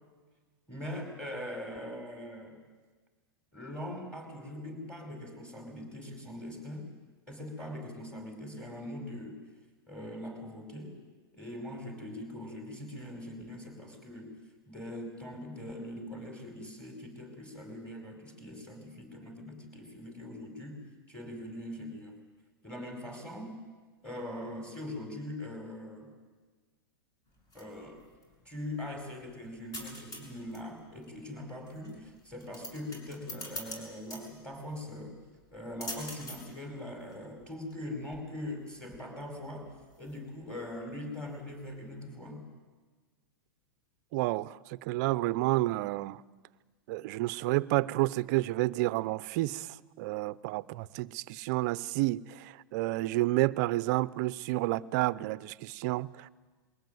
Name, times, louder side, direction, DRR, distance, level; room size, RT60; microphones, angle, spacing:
voice 1, 0.7-2.6 3.5-6.9 7.3-9.4 9.9-11.0 11.3-14.3 14.6-20.8 21.1-22.2 22.6-23.6 24.0-26.1 27.5-28.0 28.4-35.2 35.5-39.7 40.0-42.5, left 1 dB, 5° left, 2 dB, 5.0 m, -42 dB
sound 1, 27.3-42.0, left 1 dB, 30° left, 6.5 m, -48 dB
voice 2, 44.1-46.2 46.9-49.7 50.0-56.3, right 18 dB, 45° right, 18 dB, 0.6 m, -30 dB
22.0 x 17.5 x 9.3 m, 1.4 s
hypercardioid pair, 140°, 13 cm